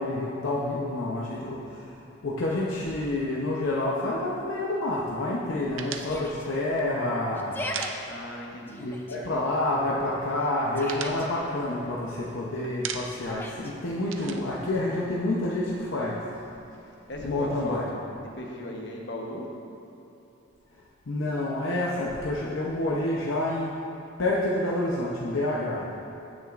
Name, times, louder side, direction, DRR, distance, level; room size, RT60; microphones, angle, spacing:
voice 1, 0.0-2.0 2.2-7.6 8.8-16.3 17.2-17.9 21.1-23.7 24.2-25.9, left 1 dB, 80° left, -5 dB, 0.8 m, -28 dB
sound 1, 5.8-8.6 8.8-9.0 9.3-10.0 10.3-12.3 12.6-13.4 13.7-15.5, right 7 dB, 75° right, 0.5 m, -39 dB
Yell, 6.0-6.5 7.3-7.9 8.7-9.2 10.4-11.3 13.1-13.7, left 1 dB, 10° left, 0.4 m, -38 dB
voice 2, 8.0-8.9 16.8-18.0 18.3-19.5, left 1 dB, 60° left, -1 dB, 1.1 m, -37 dB
15.0 x 6.3 x 2.5 m, 2.8 s
head